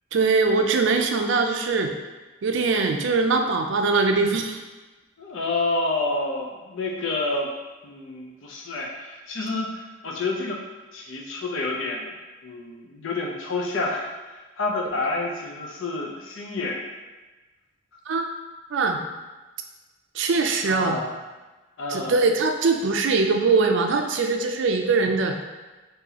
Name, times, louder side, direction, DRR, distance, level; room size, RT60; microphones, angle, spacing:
voice 1, 0.1-1.9 2.4-4.6 18.1-18.2 18.7-19.0 20.2-21.0 21.9-25.3, right 4 dB, 65° right, 4 dB, 0.4 m, -22 dB
voice 2, 5.2-7.5 7.8-10.6 10.9-12.1 12.4-16.8 20.6-21.1 21.8-22.2, left 2 dB, 70° left, -1 dB, 0.6 m, -29 dB
2.8 x 2.7 x 3.9 m, 1.2 s
head